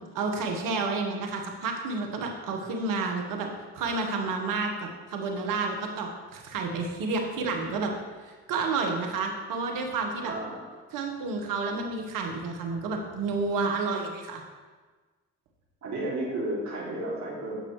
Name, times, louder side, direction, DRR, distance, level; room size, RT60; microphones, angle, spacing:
voice 1, 0.1-7.9 8.2-10.3 10.9-14.4, right 3 dB, 75° right, 3 dB, 1.4 m, -30 dB
voice 2, 10.2-10.6 15.8-17.6, right 1 dB, 60° right, -4 dB, 2.8 m, -32 dB
13.5 x 5.8 x 3.2 m, 1.4 s
supercardioid pair, 55°, 33 cm